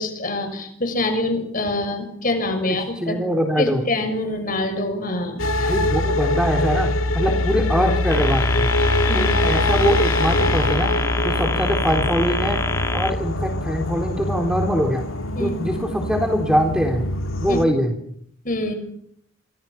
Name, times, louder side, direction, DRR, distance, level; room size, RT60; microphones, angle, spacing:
voice 1, 0.0-3.2 3.6-5.7 9.1-9.3 15.4-15.5 17.5-17.6 18.4-18.7, left 2 dB, 45° left, 6 dB, 6.9 m, -25 dB
voice 2, 2.7-3.8 5.6-8.7 9.1-12.6 12.9-15.1 15.4-17.0 17.4-17.9, equal, 5° right, 3 dB, 3.6 m, -23 dB
sound 1, 5.4-17.7, left 1 dB, 90° left, 2.2 m, -23 dB
sound 2, 8.1-13.1, left 3 dB, 15° left, 1.8 m, -27 dB
29.0 x 26.0 x 5.9 m, 0.68 s
head